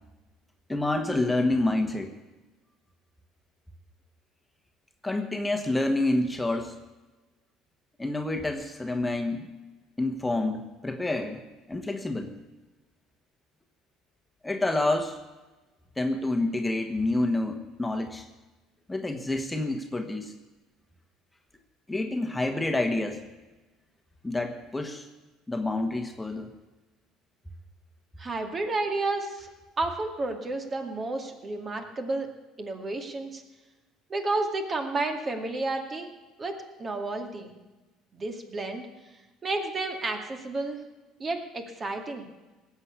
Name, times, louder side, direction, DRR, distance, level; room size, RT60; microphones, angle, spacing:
voice 1, 0.7-2.1 5.0-6.8 8.0-9.5 10.0-11.4 11.7-12.3 14.4-15.2 16.0-18.3 18.9-20.3 21.9-23.2 24.2-25.0 25.5-26.5, left 2 dB, 10° left, 4 dB, 1.5 m, -28 dB
voice 2, 28.2-29.5 29.8-32.3 32.6-33.4 34.1-37.5 38.1-38.9 39.4-40.8 41.2-42.3, right 2 dB, 35° right, 5 dB, 2.3 m, -31 dB
18.0 x 7.2 x 8.3 m, 1.2 s
hypercardioid pair, 70°, 0 cm